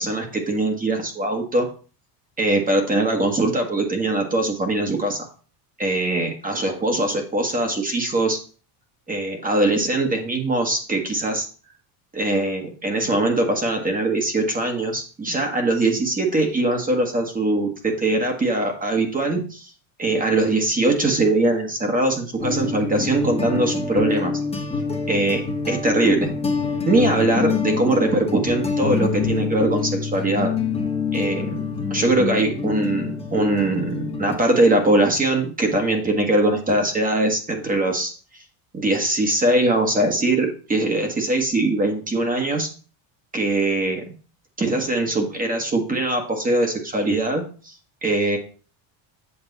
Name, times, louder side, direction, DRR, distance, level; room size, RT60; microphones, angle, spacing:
voice 1, 0.0-1.7 2.4-5.3 5.8-8.4 9.1-11.5 12.1-19.7 20.0-24.4 25.1-26.3 26.8-30.5 31.1-31.6 31.9-38.4 38.7-42.7 43.3-44.1 44.6-47.7 48.0-48.4, right 2 dB, 15° right, 3 dB, 1.5 m, -22 dB
sound 1, 22.4-34.4, left 5 dB, 10° left, 1.2 m, -26 dB
8.2 x 6.6 x 4.0 m, 0.38 s
cardioid pair, 150°, 48 cm